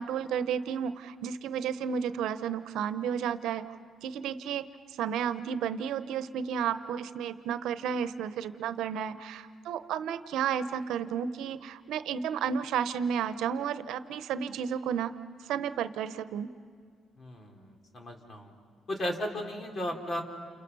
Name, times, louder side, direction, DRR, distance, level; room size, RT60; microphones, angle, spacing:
voice 1, 0.0-3.7 4.0-4.7 5.0-15.2 15.5-16.5, right 8 dB, 85° right, 12 dB, 0.9 m, -32 dB
voice 2, 17.2-18.5 18.9-20.2, equal, 45° left, 3 dB, 3.8 m, -35 dB
29.5 x 29.0 x 5.5 m, 2.1 s
cardioid pair, 90°, 0 cm